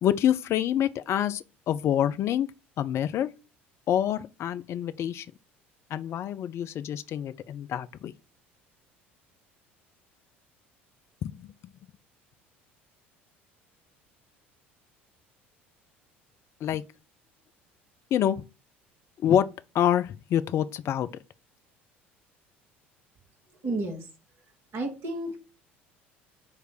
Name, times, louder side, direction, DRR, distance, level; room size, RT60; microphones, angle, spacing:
voice 1, 0.0-2.5 2.8-3.3 3.9-5.3 5.9-8.1 11.2-11.5 16.6-16.8 18.1-18.4 19.2-19.5 19.7-21.1, left 10 dB, 45° left, 0.6 m, -26 dB
voice 2, 23.6-24.1 24.7-25.4, right 2 dB, 40° right, 2.9 m, -31 dB
9.8 x 3.3 x 6.2 m
figure-of-eight pair, 65°, 6 cm